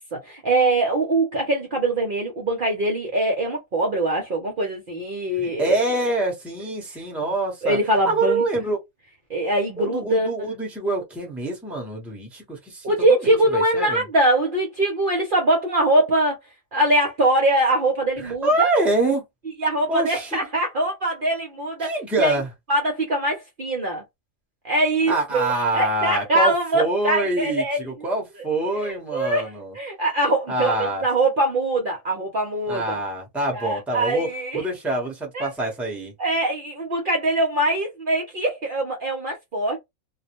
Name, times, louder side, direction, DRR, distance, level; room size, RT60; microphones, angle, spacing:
voice 1, 0.1-5.8 6.9-7.0 7.6-8.4 9.3-10.5 12.8-16.4 16.7-18.7 19.6-22.4 22.7-24.0 24.6-27.9 28.7-33.0 33.5-34.6 35.3-35.5 36.2-39.8, right 1 dB, 50° right, 0.7 m, -23 dB
voice 2, 5.4-7.8 8.0-8.8 9.8-12.8 13.2-14.0 18.2-19.2 19.9-20.4 21.8-22.5 25.1-29.7 30.5-31.0 32.7-34.3 34.5-36.1, right 2 dB, ahead, 0.7 m, -25 dB
2.4 x 2.0 x 2.9 m
omnidirectional pair, 1.4 m